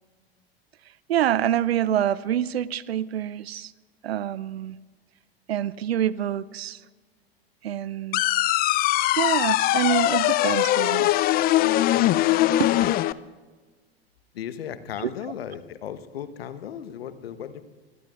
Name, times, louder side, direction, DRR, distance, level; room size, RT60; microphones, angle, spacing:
voice 1, 1.1-3.7 4.0-4.8 5.5-6.8 7.6-8.2 9.2-11.1 12.6-12.7 15.0-15.1, right 10 dB, 75° right, 0.6 m, -26 dB
sound 1, 8.1-13.1, left 15 dB, 30° left, 0.5 m, -21 dB
voice 2, 14.3-17.6, left 9 dB, 70° left, 1.1 m, -36 dB
26.5 x 22.0 x 2.4 m
figure-of-eight pair, 85°, 31 cm